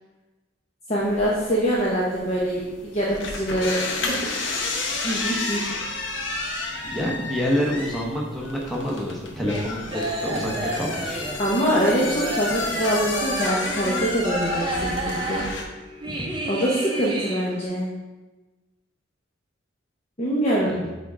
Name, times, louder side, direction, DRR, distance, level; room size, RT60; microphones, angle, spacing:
voice 1, 0.9-3.8 5.0-5.7 11.4-15.5 16.5-17.9 20.2-20.8, equal, 35° left, -6 dB, 0.9 m, -24 dB
sound 1, 1.0-15.6, left 3 dB, 65° left, 0.9 m, -31 dB
voice 2, 6.8-11.3 20.7-20.8, equal, ahead, -3 dB, 1.0 m, -27 dB
sound 2, 9.5-17.6, right 1 dB, 25° right, 0.7 m, -31 dB
8.2 x 3.7 x 3.7 m, 1.2 s
head